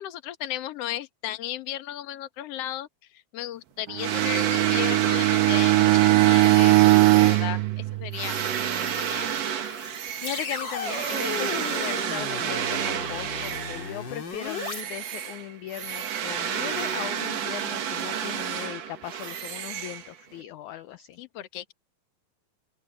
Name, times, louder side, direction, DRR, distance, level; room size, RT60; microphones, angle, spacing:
voice 1, 0.0-6.8 7.1-8.4 8.7-9.4 21.2-21.7, left 13 dB, 60° left, 1.8 m, -35 dB
Bowed string instrument, 3.9-8.5, right 21 dB, 80° right, 2.1 m, -20 dB
sound 1, 4.0-14.0 14.4-20.4, right 8 dB, 55° right, 2.3 m, -30 dB
sound 2, 9.5-14.8, left 4 dB, 30° left, 3.0 m, -35 dB
voice 2, 10.2-21.2, left 11 dB, 75° left, 1.9 m, -38 dB
omnidirectional pair, 4.3 m